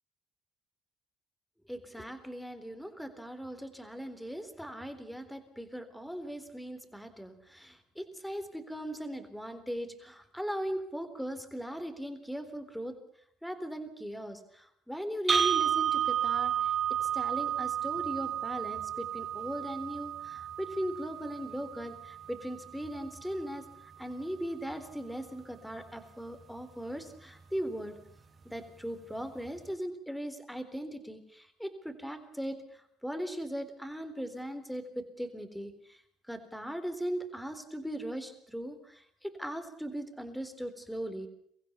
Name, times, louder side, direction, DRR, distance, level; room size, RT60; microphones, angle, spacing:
voice 1, 1.7-12.9 13.4-16.7 17.1-28.0 28.5-36.0 36.3-41.3, equal, ahead, 9 dB, 3.8 m, -39 dB
sound 1, 15.3-23.3, right 9 dB, 35° right, 4.2 m, -32 dB
24.0 x 15.5 x 7.2 m, 0.66 s
supercardioid pair, 70°, 0 cm